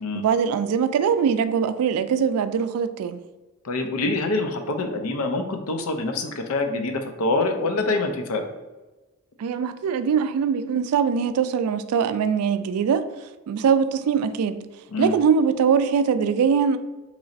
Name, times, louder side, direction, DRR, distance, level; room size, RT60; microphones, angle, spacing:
voice 1, 0.1-3.2 9.4-13.0 13.5-14.6 15.0-16.8, right 6 dB, 85° right, 0.3 m, -22 dB
voice 2, 3.6-8.4 14.9-15.1, left 2 dB, 80° left, 0.5 m, -25 dB
3.1 x 2.4 x 4.0 m
head